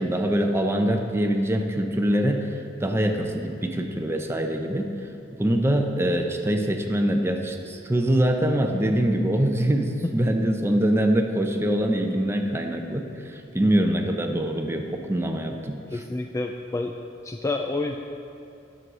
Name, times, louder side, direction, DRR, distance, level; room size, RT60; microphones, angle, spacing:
voice 1, 0.0-2.5 2.8-4.9 5.4-16.0, right 1 dB, 15° right, 3 dB, 0.7 m, -24 dB
voice 2, 15.9-16.9 17.2-18.0, left 2 dB, 15° left, 4 dB, 0.3 m, -28 dB
10.5 x 6.3 x 5.4 m, 2.6 s
head